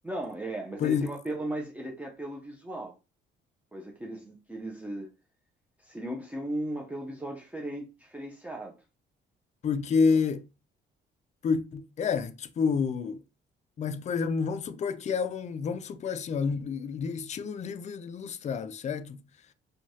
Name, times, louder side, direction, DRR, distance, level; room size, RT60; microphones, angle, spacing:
voice 1, 0.0-3.0 3.7-5.1 5.8-8.8, right 1 dB, 5° right, 0.6 m, -36 dB
voice 2, 0.8-1.1 9.6-10.5 11.4-13.2 13.8-19.2, left 5 dB, 35° left, 0.4 m, -29 dB
3.0 x 2.3 x 2.7 m
cardioid pair, 90°, 20 cm